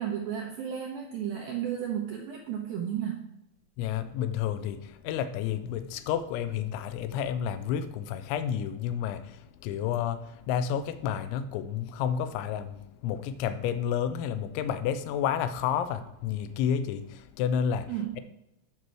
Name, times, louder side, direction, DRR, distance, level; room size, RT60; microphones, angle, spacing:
voice 1, 0.0-3.3 17.9-18.2, right 9 dB, 80° right, 2.2 m, -33 dB
voice 2, 3.8-18.2, left 8 dB, 85° left, 3.0 m, -30 dB
9.4 x 4.5 x 6.3 m
omnidirectional pair, 5.3 m